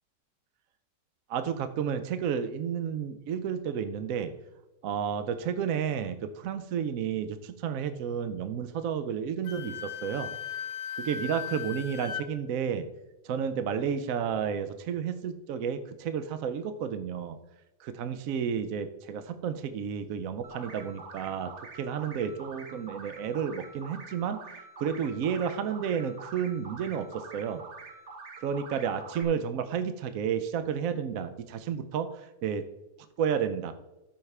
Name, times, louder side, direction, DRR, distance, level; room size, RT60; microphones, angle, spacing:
voice 1, 1.3-4.3 4.8-10.3 11.0-12.9 13.2-17.4 17.8-21.5 21.8-24.4 24.8-27.6 28.4-32.6 33.2-33.7, right 7 dB, 65° right, 10 dB, 0.9 m, -31 dB
Wind instrument woodwind instrument, 9.5-12.3, left 7 dB, 75° left, 1.2 m, -37 dB
sound 1, 20.4-29.2, right 3 dB, 45° right, 1.3 m, -46 dB
13.0 x 5.8 x 3.3 m, 1.0 s
omnidirectional pair, 1.8 m